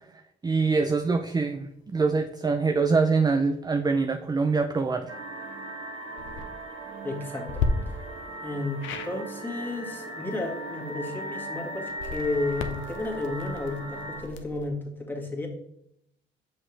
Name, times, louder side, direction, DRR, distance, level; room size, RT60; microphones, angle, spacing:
voice 1, 0.4-5.1, right 4 dB, 20° right, 6 dB, 0.5 m, -24 dB
sound 1, 5.1-14.2, right 1 dB, 80° right, 2.0 m, -38 dB
sound 2, 6.1-6.5 7.5-7.7 8.8-9.1 11.9-14.7, left 6 dB, 75° left, 0.8 m, -34 dB
voice 2, 7.0-7.9 8.4-15.5, left 2 dB, 10° left, -1 dB, 1.9 m, -32 dB
6.7 x 5.5 x 3.3 m, 0.76 s
cardioid pair, 90°, 20 cm